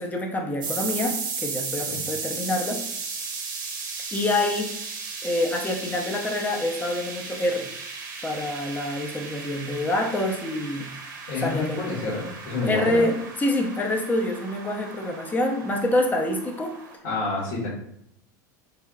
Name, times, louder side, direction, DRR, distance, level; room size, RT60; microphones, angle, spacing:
voice 1, 0.0-2.8 4.1-4.7 5.2-7.7 8.2-10.9 11.4-11.8 12.7-13.1 13.4-16.7, left 1 dB, 15° left, 1 dB, 0.7 m, -26 dB
sound 1, 0.6-17.0, right 4 dB, 85° right, 0.9 m, -35 dB
voice 2, 11.3-13.1 17.0-17.7, left 3 dB, 65° left, -8 dB, 1.4 m, -28 dB
3.5 x 3.3 x 2.4 m, 0.74 s
hypercardioid pair, 100°, 10 cm